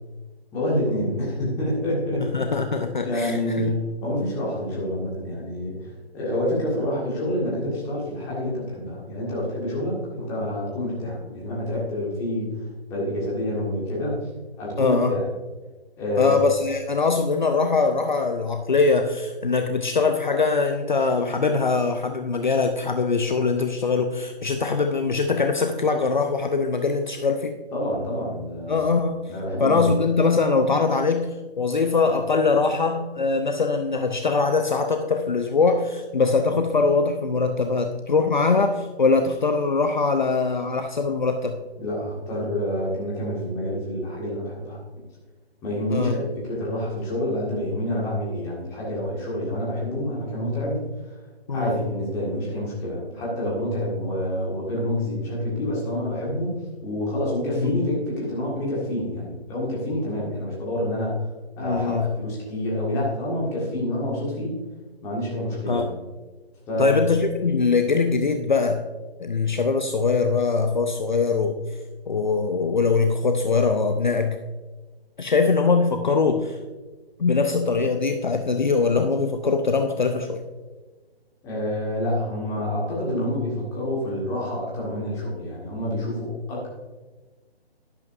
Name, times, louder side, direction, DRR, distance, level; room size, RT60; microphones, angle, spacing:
voice 1, 0.5-2.5 3.0-5.9 6.1-12.5 12.9-14.2 14.6-15.2 16.0-16.4 27.7-28.9 29.3-29.9 41.8-44.8 45.6-50.9 51.5-61.2 61.6-64.6 65.0-65.9 66.7-67.0 81.4-86.8, left 1 dB, 10° left, -5 dB, 1.9 m, -27 dB
voice 2, 2.3-3.7 14.8-15.1 16.2-27.5 28.7-29.2 29.6-41.6 45.9-46.1 51.5-51.7 57.6-57.7 61.6-62.1 65.7-65.9 66.8-68.8 69.2-71.6 72.1-74.4 75.2-76.6 77.2-80.4, left 4 dB, 45° left, 6 dB, 0.7 m, -22 dB
11.5 x 11.0 x 2.6 m, 1.3 s
figure-of-eight pair, 150°, 31 cm